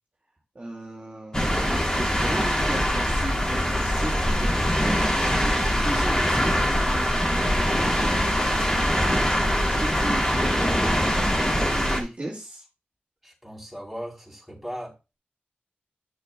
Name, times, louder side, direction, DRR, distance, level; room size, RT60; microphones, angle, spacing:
voice 1, 0.6-4.7 5.2-6.2 6.7-9.0 9.6-11.1 11.4-12.6, right 1 dB, 35° right, -2 dB, 2.2 m, -36 dB
sound 1, 1.3-12.0, equal, 20° left, 3.0 m, -23 dB
voice 2, 13.2-15.2, equal, ahead, -4 dB, 4.0 m, -38 dB
11.5 x 6.7 x 2.4 m, 0.28 s
wide cardioid pair, 75°, 4 cm